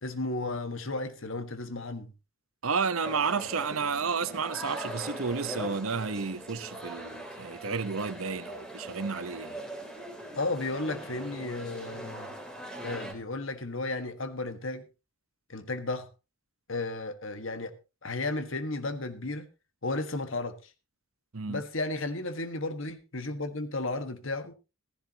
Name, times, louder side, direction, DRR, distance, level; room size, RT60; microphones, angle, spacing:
voice 1, 0.0-2.1 10.4-12.4 12.8-14.8 15.5-16.1 16.7-17.7 18.0-19.5 19.8-20.6 21.5-24.5, left 2 dB, 65° left, 1.6 m, -33 dB
voice 2, 2.6-9.6 21.3-21.6, right 5 dB, 75° right, 0.9 m, -31 dB
sound 1, 3.0-13.1, right 1 dB, 5° left, 3.0 m, -41 dB
15.0 x 15.0 x 2.9 m
head